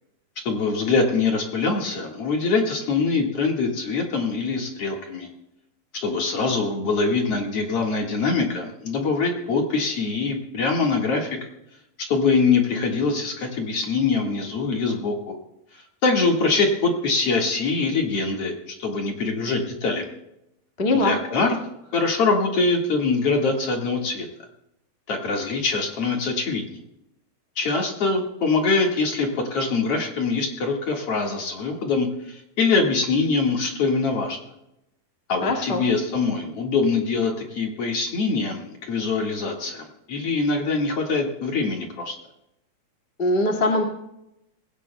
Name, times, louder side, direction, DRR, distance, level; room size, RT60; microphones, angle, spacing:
voice 1, 0.4-5.3 5.9-11.4 12.1-15.4 16.0-20.1 20.9-21.6 21.9-24.3 25.1-26.8 27.6-34.4 35.3-42.2, left 4 dB, 50° left, 1 dB, 2.2 m, -23 dB
voice 2, 20.8-21.2 35.4-35.9 43.2-43.8, left 2 dB, 35° left, 0 dB, 0.9 m, -21 dB
20.0 x 16.5 x 2.2 m, 0.85 s
omnidirectional pair, 4.4 m